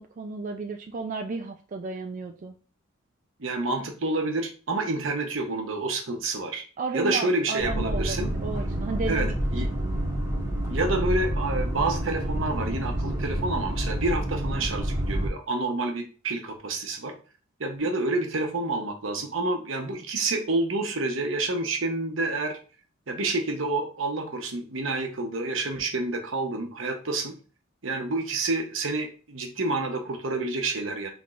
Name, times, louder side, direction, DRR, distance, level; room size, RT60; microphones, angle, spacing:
voice 1, 0.0-2.6 6.8-9.3 9.6-10.0, right 4 dB, 40° right, 4 dB, 0.4 m, -33 dB
voice 2, 3.4-6.6 6.9-8.3 9.1-9.3 9.5-9.7 10.6-17.1 17.6-22.6 23.1-27.3 27.8-31.1, right 2 dB, 75° right, 4 dB, 1.0 m, -28 dB
sound 1, 7.6-15.3, right 1 dB, 15° right, 1.8 m, -28 dB
5.8 x 3.5 x 2.5 m, 0.37 s
head